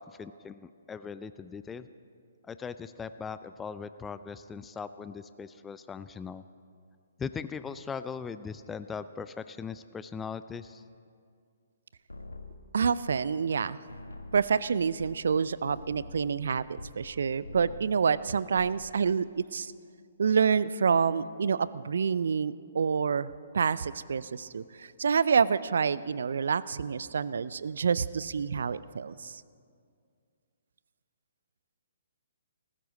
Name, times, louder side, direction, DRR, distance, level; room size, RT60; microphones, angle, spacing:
voice 1, 0.0-1.9 2.5-6.4 7.2-10.8, left 6 dB, 10° left, 12 dB, 0.3 m, -39 dB
sound 1, 12.1-13.6 13.9-17.2 17.4-18.0 18.3-18.9, left 2 dB, 80° left, 1.2 m, -46 dB
voice 2, 12.7-13.8 14.3-19.7 20.2-29.4, right 6 dB, 60° right, 18 dB, 0.4 m, -28 dB
18.5 x 15.0 x 4.1 m, 2.2 s
figure-of-eight pair, 125°, 0 cm